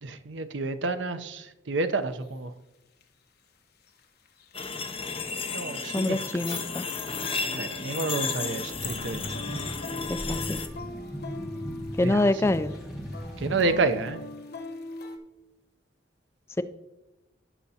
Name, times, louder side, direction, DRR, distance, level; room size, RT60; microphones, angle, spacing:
voice 1, 0.0-2.5 5.5-6.4 7.5-9.2 12.0-12.3 13.4-14.2, right 3 dB, 70° right, 0.6 m, -29 dB
sound 1, 2.2-2.3 3.0-3.1 3.9-5.1 5.3-5.6 5.9-7.5 7.8-15.2, left 2 dB, 55° left, 1.0 m, -41 dB
sound 2, 4.5-10.7, left 5 dB, 30° left, 0.7 m, -33 dB
voice 2, 5.9-6.8 10.1-10.6 12.0-12.7 16.6-16.7, left 2 dB, 15° left, 0.3 m, -25 dB
sound 3, 8.7-13.8, equal, ahead, 1.6 m, -38 dB
17.0 x 5.8 x 2.8 m
head